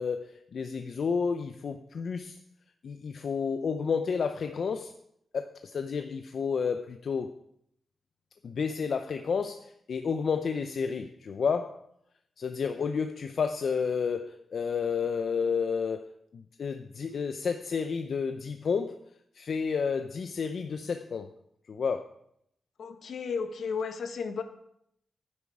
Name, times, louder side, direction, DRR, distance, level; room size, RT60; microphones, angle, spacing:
voice 1, 0.0-2.4 2.8-4.9 5.3-7.3 8.4-11.8 12.4-19.0 19.3-21.3 21.6-22.1, left 5 dB, 60° left, 0.5 m, -31 dB
voice 2, 22.8-24.4, left 5 dB, 75° left, 1.2 m, -33 dB
12.0 x 9.6 x 4.8 m
wide cardioid pair, 175°, 0 cm